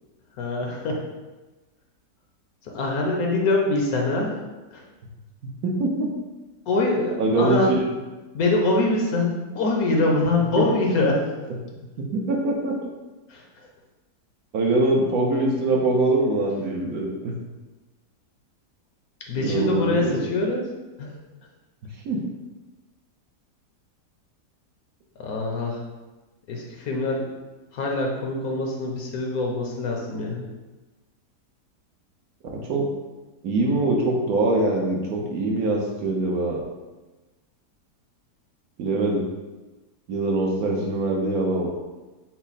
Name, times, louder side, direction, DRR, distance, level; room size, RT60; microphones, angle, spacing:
voice 1, 0.4-1.0 2.6-4.3 4.7-4.8 6.7-7.7 8.3-11.2 13.3-13.4 19.3-20.7 21.0-21.2 25.2-25.8 26.5-27.3 27.7-30.5, left 2 dB, 65° left, 0 dB, 1.1 m, -24 dB
voice 2, 5.4-6.1 7.2-7.7 12.0-12.8 14.5-17.3 19.4-20.2 22.0-22.2 32.5-32.9 33.4-36.6 38.8-39.3 40.1-41.7, right 2 dB, 65° right, -1 dB, 1.1 m, -23 dB
6.0 x 2.1 x 4.0 m, 1.2 s
omnidirectional pair, 1.8 m